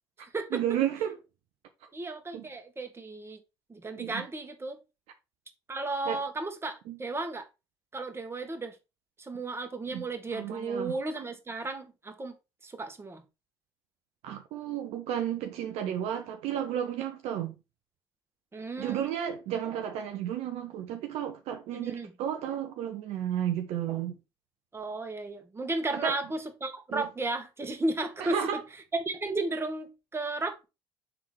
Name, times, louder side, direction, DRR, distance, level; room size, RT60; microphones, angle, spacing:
voice 1, 0.5-1.2 2.3-2.5 4.0-4.2 6.1-6.2 6.9-7.0 9.9-10.0 10.3-11.0 14.2-17.6 18.8-24.2 25.9-26.1 26.9-27.1 28.2-28.6, right 10 dB, 65° right, 0.8 m, -32 dB
voice 2, 1.9-3.4 3.7-4.8 5.7-7.5 7.9-8.7 9.2-12.3 12.6-13.2 18.5-19.1 21.7-22.1 24.7-28.6 28.9-30.6, right 2 dB, 20° right, 1.5 m, -34 dB
5.9 x 3.7 x 4.7 m
hypercardioid pair, 60°, 12 cm